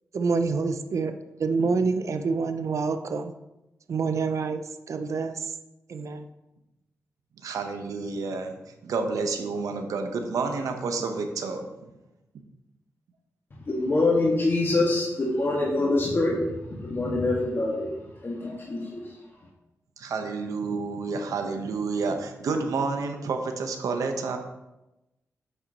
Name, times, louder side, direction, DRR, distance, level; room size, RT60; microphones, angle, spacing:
voice 1, 0.1-3.3 3.9-4.6 4.9-5.5 5.9-6.2, right 4 dB, 65° right, 9 dB, 0.6 m, -27 dB
voice 2, 7.4-8.6 8.8-11.7 20.0-24.4, right 4 dB, 90° right, 5 dB, 0.9 m, -29 dB
voice 3, 13.7-17.9 18.2-19.2, left 2 dB, 40° left, -4 dB, 1.7 m, -25 dB
7.8 x 7.7 x 2.9 m, 0.97 s
cardioid pair, 75°, 6 cm